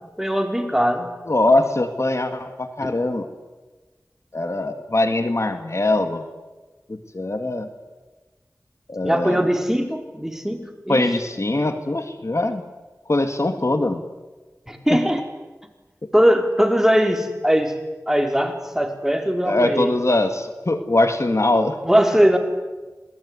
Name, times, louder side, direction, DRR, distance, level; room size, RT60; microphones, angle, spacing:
voice 1, 0.2-1.1 2.8-2.9 9.0-11.0 14.7-15.2 16.1-17.7 18.1-19.9 21.8-22.4, equal, 5° right, 4 dB, 4.6 m, -20 dB
voice 2, 1.3-3.3 4.3-6.2 6.9-7.7 8.9-9.5 10.9-12.7 13.1-14.0 14.9-15.0 19.5-21.8, left 2 dB, 55° left, 8 dB, 2.0 m, -22 dB
27.0 x 19.0 x 9.7 m, 1.2 s
wide cardioid pair, 40°, 6 cm